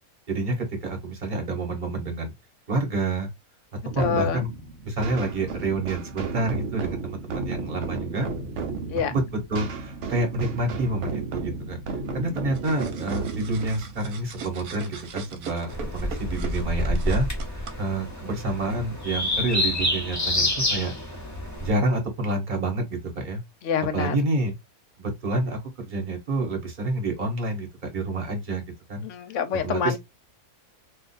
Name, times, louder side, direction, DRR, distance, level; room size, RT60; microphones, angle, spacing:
voice 1, 0.3-2.3 2.7-3.3 3.9-4.5 4.8-8.3 9.1-17.3 17.5-20.9 21.6-23.4 23.9-24.5 25.0-28.6 28.9-29.0 29.6-30.0, right 2 dB, 35° right, 1.1 m, -28 dB
sound 1, 3.9-15.3, right 4 dB, 60° right, 0.9 m, -34 dB
voice 2, 4.0-4.5 8.9-9.1 23.6-24.2 29.0-30.0, left 6 dB, 65° left, 0.9 m, -26 dB
sound 2, 12.5-17.7, right 5 dB, 80° right, 1.2 m, -40 dB
sound 3, 15.7-21.7, left 1 dB, 15° left, 0.6 m, -28 dB
2.5 x 2.4 x 4.0 m
omnidirectional pair, 1.6 m